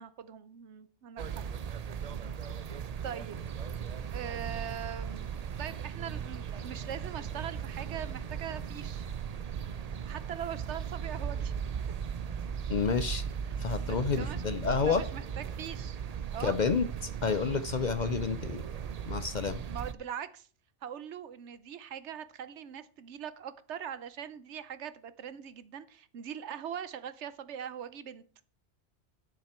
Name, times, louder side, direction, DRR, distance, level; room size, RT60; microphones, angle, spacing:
voice 1, 0.0-1.4 3.0-3.5 4.1-5.3 5.6-9.1 10.0-11.5 13.8-14.5 14.8-16.0 16.3-16.6 19.7-20.5 20.8-28.2, right 9 dB, 75° right, 14 dB, 1.0 m, -41 dB
sound 1, 1.2-19.9, right 7 dB, 45° right, 0.5 m, -37 dB
voice 2, 12.7-13.2 13.6-15.0 16.4-18.6 19.1-19.6, left 5 dB, 50° left, 12 dB, 0.6 m, -29 dB
10.0 x 8.8 x 4.3 m, 0.42 s
omnidirectional pair, 1.2 m